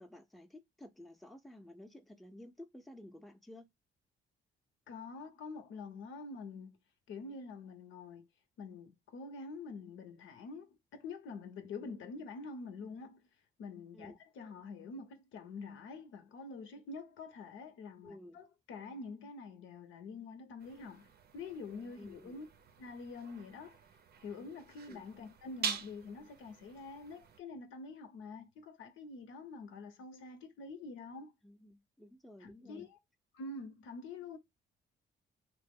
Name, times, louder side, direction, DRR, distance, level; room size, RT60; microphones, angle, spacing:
voice 1, 0.0-3.7 13.9-14.2 18.0-18.4 22.0-22.4 24.9-25.1 31.4-32.9, left 1 dB, ahead, 0.5 m, -53 dB
voice 2, 4.9-6.8 7.1-8.3 8.6-13.3 13.6-22.5 22.8-23.8 24.2-31.3 32.4-33.0 33.3-34.4, left 4 dB, 85° left, 0.7 m, -46 dB
sound 1, 20.6-27.4, right 6 dB, 55° right, 0.6 m, -45 dB
3.0 x 2.0 x 3.5 m
cardioid pair, 90°, 20 cm